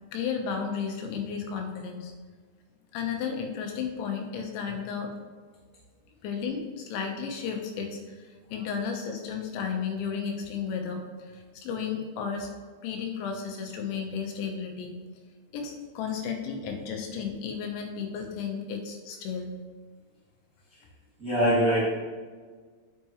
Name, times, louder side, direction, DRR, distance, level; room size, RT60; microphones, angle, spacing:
voice 1, 0.1-2.1 2.9-5.1 6.2-12.5 12.8-14.9 15.5-19.5, left 6 dB, 80° left, 3 dB, 3.4 m, -33 dB
voice 2, 21.2-21.9, equal, 70° right, -9 dB, 0.8 m, -23 dB
10.5 x 5.9 x 3.1 m, 1.5 s
omnidirectional pair, 5.2 m